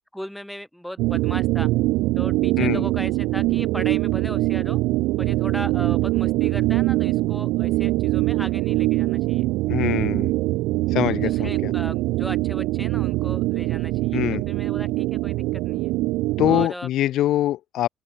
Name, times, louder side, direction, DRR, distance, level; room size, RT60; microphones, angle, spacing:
voice 1, 0.1-1.7 2.2-4.8 5.2-9.5 11.2-15.9 16.5-17.1, equal, ahead, 6.0 m, -37 dB
sound 1, 1.0-16.7, right 19 dB, 80° right, 2.3 m, -23 dB
voice 2, 9.7-10.3 10.9-11.7 14.1-14.4 16.4-17.9, left 13 dB, 60° left, 3.1 m, -23 dB
open air
cardioid pair, 160°, 0 cm